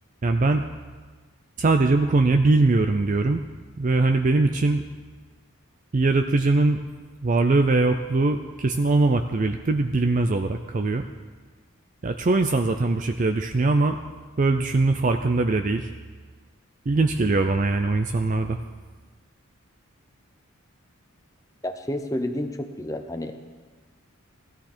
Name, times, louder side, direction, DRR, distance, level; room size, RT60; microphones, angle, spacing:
voice 1, 0.2-0.6 1.6-3.4 3.8-4.8 5.9-6.8 7.2-11.1 12.0-14.0 14.4-15.9 16.9-18.6, right 3 dB, 35° right, 7 dB, 0.4 m, -21 dB
voice 2, 21.6-23.3, left 1 dB, 15° left, 6 dB, 0.7 m, -30 dB
16.0 x 11.5 x 4.4 m, 1.4 s
head